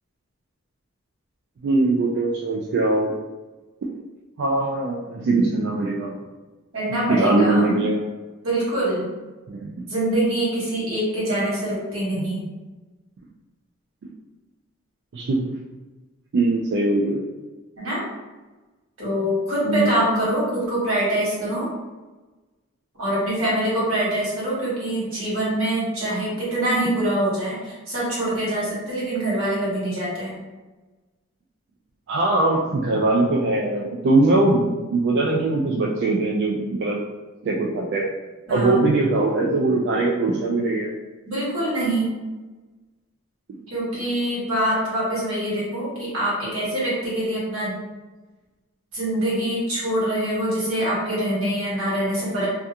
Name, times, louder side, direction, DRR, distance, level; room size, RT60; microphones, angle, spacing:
voice 1, 1.6-3.1 4.4-6.2 7.1-8.0 9.5-9.9 15.1-15.5 16.3-17.2 19.7-20.0 32.1-37.0 37.4-38.1 38.5-40.9 43.5-43.6, right 2 dB, 60° right, -3 dB, 0.3 m, -21 dB
voice 2, 6.7-7.7 8.4-9.1 9.9-12.4 17.8-18.0 19.0-21.7 23.0-30.3 38.5-38.8 41.3-42.1 43.7-47.8 48.9-52.5, right 1 dB, 90° right, -7 dB, 1.3 m, -24 dB
2.3 x 2.3 x 2.7 m, 1.2 s
head